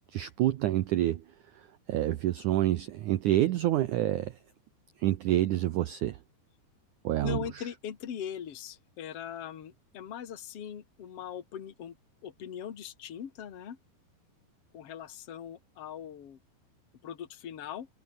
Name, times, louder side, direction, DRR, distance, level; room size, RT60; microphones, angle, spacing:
voice 1, 0.1-1.2 1.9-4.4 5.0-6.2 7.0-7.4, right 14 dB, 90° right, 1.7 m, -27 dB
voice 2, 7.2-11.9 12.2-13.8 14.7-16.4 17.0-17.9, left 9 dB, 40° left, 2.7 m, -40 dB
omnidirectional pair, 4.8 m